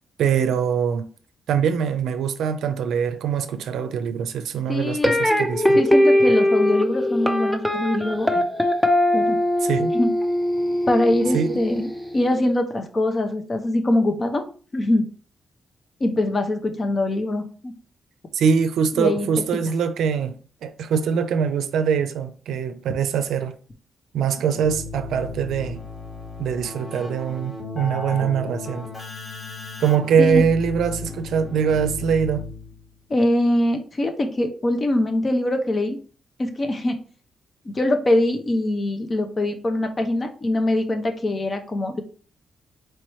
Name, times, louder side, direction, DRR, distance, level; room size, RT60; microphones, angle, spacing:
voice 1, 0.2-1.1 1.5-5.8 9.6-9.9 11.3-11.6 18.3-23.6 24.1-25.8 26.4-28.9 29.8-32.5, right 7 dB, 85° right, 0.4 m, -23 dB
voice 2, 4.7-5.4 5.8-8.4 9.1-9.4 9.9-10.1 10.9-11.9 12.1-14.5 14.7-15.1 16.0-17.7 19.0-19.3 30.2-30.4 33.1-36.0 36.4-37.0 37.7-42.0, left 1 dB, 35° left, 0.8 m, -23 dB
sound 1, 5.0-12.1, left 1 dB, ahead, 0.6 m, -21 dB
Keyboard (musical), 24.5-32.9, left 3 dB, 20° left, 1.6 m, -35 dB
4.5 x 3.1 x 3.0 m
cardioid pair, 75°, 0 cm